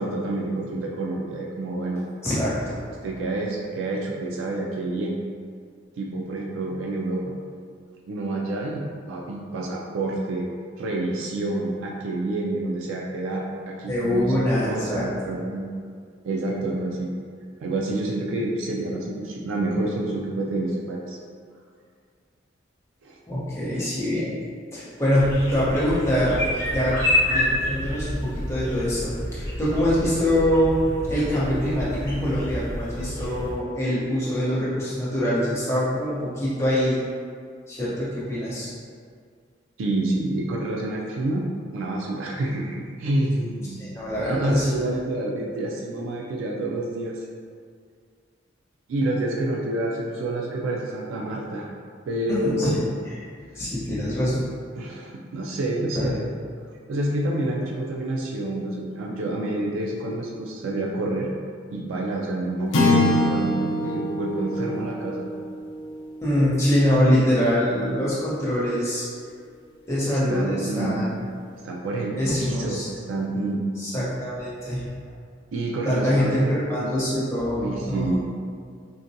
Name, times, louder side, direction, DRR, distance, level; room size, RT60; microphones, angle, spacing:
voice 1, 0.0-2.0 3.0-5.2 6.0-7.4 8.1-10.5 10.8-15.7 16.2-17.1 17.6-21.2 23.0-23.2 23.7-23.9 39.8-41.5 41.7-43.8 44.2-47.3 48.9-51.7 52.1-52.8 54.7-56.3 56.9-61.3 61.7-65.3 70.1-71.0 71.6-73.6 75.5-76.9 77.5-78.2, right 2 dB, 85° right, -2 dB, 0.3 m, -28 dB
voice 2, 2.2-2.8 13.9-15.3 23.3-24.3 24.7-26.4 26.7-26.9 27.2-30.8 31.1-37.0 37.7-38.7 43.8-44.7 52.3-53.2 53.5-54.4 55.9-56.1 66.2-69.1 69.9-71.2 72.2-72.9 73.8-74.9 75.8-78.2, equal, 15° left, -9 dB, 0.7 m, -24 dB
sound 1, 25.2-33.6, left 1 dB, 50° left, 0.9 m, -28 dB
sound 2, 62.7-67.2, left 1 dB, 70° left, 0.5 m, -25 dB
3.9 x 2.2 x 2.6 m, 2.1 s
head